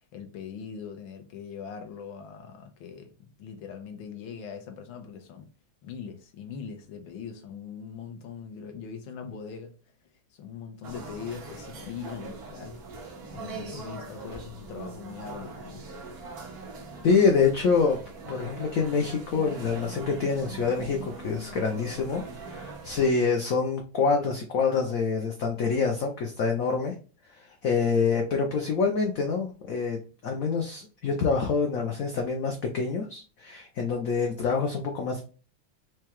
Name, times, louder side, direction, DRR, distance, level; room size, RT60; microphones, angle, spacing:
voice 1, 0.1-5.5 5.8-9.7 10.3-12.8 13.3-15.9, left 7 dB, 90° left, 1.6 m, -41 dB
sound 1, 10.8-23.1, right 3 dB, 55° right, 1.3 m, -42 dB
voice 2, 17.0-18.0 18.2-26.9 27.4-35.2, left 5 dB, 70° left, 0.8 m, -26 dB
4.7 x 2.3 x 2.9 m
omnidirectional pair, 2.1 m